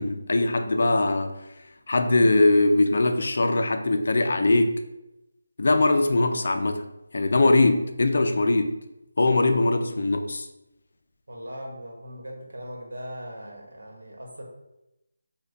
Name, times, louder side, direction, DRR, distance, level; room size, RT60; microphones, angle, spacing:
voice 1, 0.0-1.4 1.9-4.8 5.6-6.9 7.1-8.8 9.2-10.5, left 2 dB, 55° left, 7 dB, 0.3 m, -21 dB
voice 2, 11.3-14.4, equal, 90° right, -1 dB, 1.0 m, -39 dB
3.3 x 2.2 x 3.8 m, 0.91 s
figure-of-eight pair, 175°, 0 cm